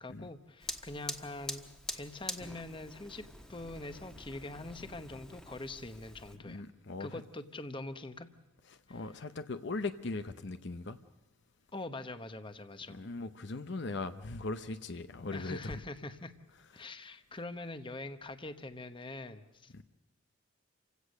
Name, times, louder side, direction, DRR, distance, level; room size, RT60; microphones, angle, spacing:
voice 1, 0.0-1.6 1.9-6.6 7.0-8.3 8.9-9.0 11.7-13.0 15.3-16.3 16.7-19.8, left 2 dB, 25° left, 1.0 m, -44 dB
Fire, 0.6-6.4, equal, 5° left, 1.2 m, -45 dB
voice 2, 6.4-7.2 8.7-11.0 12.9-15.8 16.8-16.9 19.7-19.8, left 3 dB, 60° left, 0.8 m, -39 dB
28.5 x 16.5 x 6.5 m
head